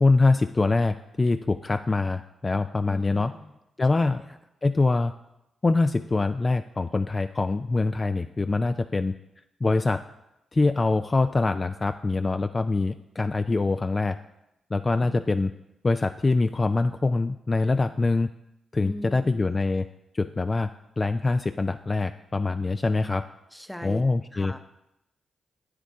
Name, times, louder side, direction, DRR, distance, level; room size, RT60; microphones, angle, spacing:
voice 1, 0.0-3.3 3.8-4.2 4.6-5.1 5.6-9.1 9.6-10.0 10.5-14.2 14.7-15.5 15.8-18.3 18.7-19.9 20.1-20.7 21.0-23.2 23.8-24.5, left 3 dB, 35° left, 9 dB, 0.3 m, -24 dB
voice 2, 2.9-3.5 3.9-4.4 15.0-15.3 18.8-19.6 23.5-24.0 24.3-24.6, equal, 5° left, 8 dB, 0.8 m, -40 dB
8.4 x 8.1 x 3.6 m, 0.87 s
supercardioid pair, 50°, 0 cm